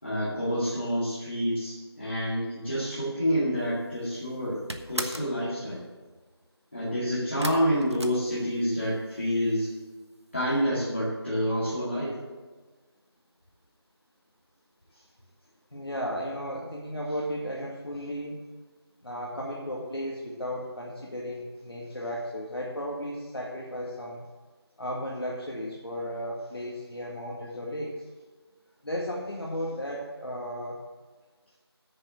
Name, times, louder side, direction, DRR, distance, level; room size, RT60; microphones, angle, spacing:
voice 1, 0.0-4.6 4.9-5.8 6.7-9.7 10.3-12.2, equal, 30° left, -10 dB, 2.3 m, -28 dB
sound 1, 3.7-4.1 4.3-5.4 7.4-8.9 9.2-9.8 10.1-10.2 10.5-10.6, right 1 dB, 90° right, 1.2 m, -37 dB
voice 2, 15.7-18.4 19.0-24.2 24.8-27.9 28.8-30.8, equal, 65° left, -4 dB, 2.0 m, -34 dB
9.8 x 6.8 x 7.4 m, 1.3 s
figure-of-eight pair, 175°, 14 cm